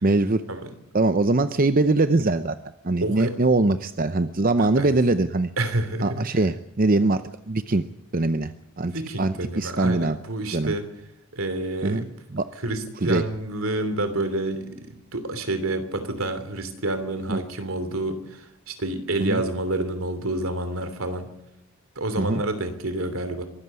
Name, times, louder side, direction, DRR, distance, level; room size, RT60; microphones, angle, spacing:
voice 1, 0.0-0.4 0.9-2.5 2.8-5.5 6.0-7.8 8.1-10.2 10.5-10.7 11.8-12.1 12.3-12.5 13.0-13.2 17.3-17.4 19.2-19.4 22.2-22.4, right 2 dB, 40° right, 10 dB, 0.7 m, -22 dB
voice 2, 3.0-3.3 4.6-4.9 5.6-6.2 8.8-10.9 11.3-12.1 12.6-21.3 21.9-23.4, right 2 dB, 75° right, 10 dB, 3.0 m, -28 dB
23.5 x 13.5 x 8.3 m, 0.83 s
head